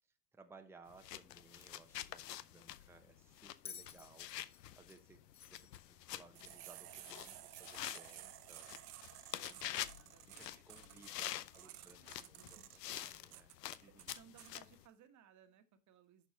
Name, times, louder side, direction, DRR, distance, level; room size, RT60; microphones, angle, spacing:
voice 1, 0.3-5.2 5.5-8.7 10.3-13.5 13.8-14.1, right 3 dB, 5° right, 6 dB, 0.9 m, -62 dB
sound 1, 0.9-14.9, left 13 dB, 80° left, 0.7 m, -47 dB
Bell, 3.6-6.8 8.0-8.1, left 7 dB, 15° left, 0.4 m, -55 dB
sound 2, 6.3-14.5, right 16 dB, 65° right, 0.9 m, -54 dB
voice 2, 9.3-12.8 13.8-16.3, right 8 dB, 35° right, 9 dB, 1.5 m, -65 dB
11.5 x 4.5 x 4.2 m, 0.28 s
hypercardioid pair, 95°, 48 cm